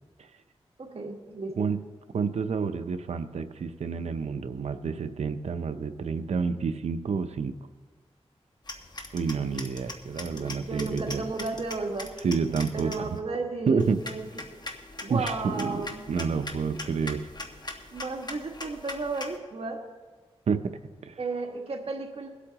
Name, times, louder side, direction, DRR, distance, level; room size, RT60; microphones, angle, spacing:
voice 1, 0.8-1.5 10.3-12.1 12.7-14.3 15.0-16.0 17.9-19.8 21.2-22.3, right 3 dB, 65° right, 1 dB, 1.8 m, -33 dB
voice 2, 2.1-7.5 9.1-11.3 12.2-13.2 13.7-14.0 15.1-17.2 20.5-20.6 21.0-21.2, right 5 dB, 85° right, 9 dB, 0.6 m, -29 dB
sound 1, 8.7-13.2 13.8-19.4, left 2 dB, 40° left, 1.3 m, -41 dB
23.0 x 8.3 x 3.0 m, 1.4 s
cardioid pair, 60°, 11 cm